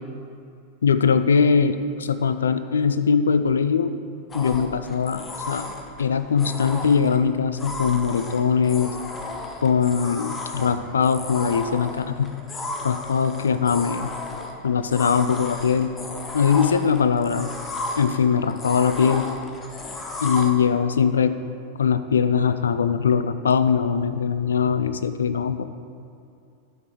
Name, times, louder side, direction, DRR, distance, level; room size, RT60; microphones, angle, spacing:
voice 1, 0.8-3.9 4.3-5.7 6.0-8.9 9.6-12.3 12.8-14.1 14.6-15.9 16.3-17.5 18.0-19.3 20.2-21.4 21.8-25.7, left 6 dB, 70° left, 11 dB, 0.4 m, -21 dB
sound 1, 4.3-20.5, left 2 dB, 20° left, 1.0 m, -34 dB
9.2 x 6.0 x 5.0 m, 2.6 s
figure-of-eight pair, 90°, 0 cm